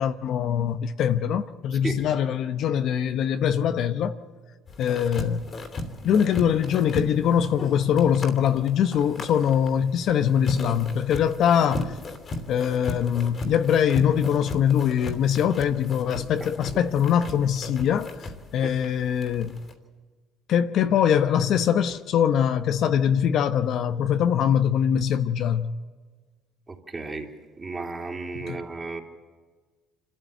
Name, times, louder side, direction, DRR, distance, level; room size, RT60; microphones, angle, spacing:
voice 1, 0.0-4.2 4.8-5.5 6.0-12.0 12.5-19.6 20.5-25.7 28.5-28.6, left 8 dB, 60° left, 0.9 m, -23 dB
sound 1, 4.7-19.7, left 2 dB, 40° left, 2.9 m, -37 dB
voice 2, 26.7-27.3 27.6-29.0, right 3 dB, 25° right, 3.0 m, -33 dB
25.5 x 13.5 x 9.0 m
cardioid pair, 100°, 0 cm